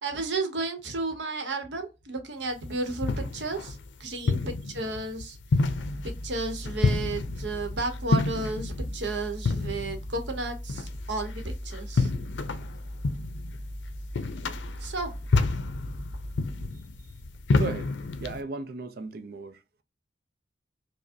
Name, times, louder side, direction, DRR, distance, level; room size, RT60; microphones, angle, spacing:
voice 1, 0.0-5.4 6.0-12.1 14.8-15.1, right 2 dB, 85° right, 0.9 m, -33 dB
sound 1, 2.5-18.4, left 3 dB, 90° left, 0.5 m, -30 dB
voice 2, 4.2-4.6 17.5-17.9 18.2-19.8, right 4 dB, 55° right, 0.5 m, -37 dB
sound 2, 5.6-16.6, equal, 15° left, 1.0 m, -39 dB
4.9 x 2.1 x 2.5 m
head